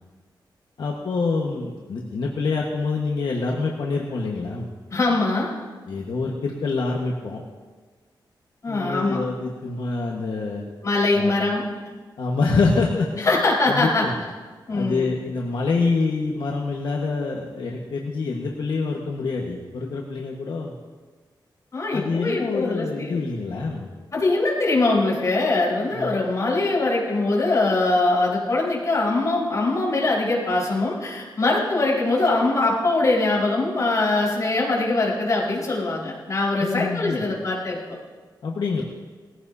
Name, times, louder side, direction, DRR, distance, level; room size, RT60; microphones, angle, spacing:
voice 1, 0.8-4.7 5.9-7.4 8.7-10.6 11.1-11.3 12.2-13.3 13.7-14.1 14.7-20.8 21.9-23.9 25.9-26.2 36.6-37.3 38.4-38.8, left 4 dB, 70° left, -2 dB, 1.4 m, -26 dB
voice 2, 4.9-5.5 8.6-9.2 10.8-11.6 13.2-14.1 14.7-15.1 21.7-23.2 24.1-38.0, left 2 dB, 40° left, -5 dB, 4.8 m, -22 dB
20.0 x 16.0 x 2.8 m, 1.4 s
wide cardioid pair, 135°, 8 cm